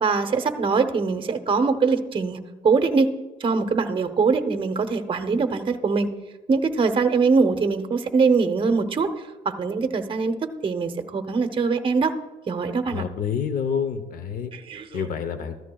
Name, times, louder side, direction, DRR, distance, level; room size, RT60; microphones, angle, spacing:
voice 1, 0.0-3.1 3.4-6.1 6.5-9.1 9.4-10.4 10.6-12.1 12.5-13.0 14.5-14.9, right 4 dB, 30° right, 8 dB, 0.8 m, -22 dB
voice 2, 12.9-14.5 14.9-15.6, left 7 dB, 55° left, 10 dB, 0.8 m, -28 dB
14.0 x 13.0 x 2.3 m, 1.2 s
cardioid pair, 110°, 17 cm